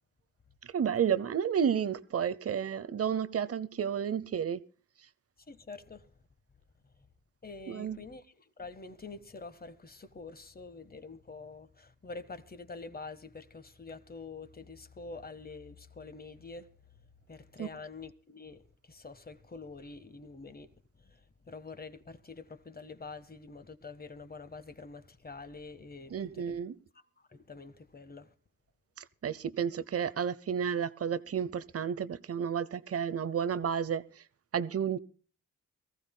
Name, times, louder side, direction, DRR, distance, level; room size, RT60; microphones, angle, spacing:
voice 1, 0.7-4.6 7.7-8.0 17.6-17.7 26.1-26.7 29.2-34.0 34.5-35.0, right 8 dB, 50° right, 0.8 m, -31 dB
voice 2, 5.5-6.0 7.4-8.3 8.6-16.7 17.3-18.6 18.9-20.7 21.0-21.2 21.5-26.6 27.3-28.3, left 4 dB, 30° left, 1.4 m, -46 dB
23.0 x 15.0 x 2.2 m
cardioid pair, 65°, 32 cm